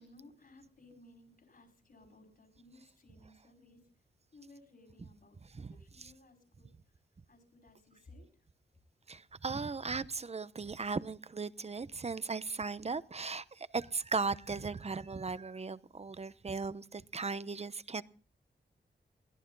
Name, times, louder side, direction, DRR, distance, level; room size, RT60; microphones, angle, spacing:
voice 1, 0.0-3.8 4.3-5.4 5.7-6.7 7.3-8.3, left 2 dB, 55° left, 5.0 m, -59 dB
voice 2, 5.4-6.1 9.1-18.0, right 4 dB, 35° right, 0.9 m, -37 dB
22.0 x 16.5 x 3.9 m
wide cardioid pair, 125°, 18 cm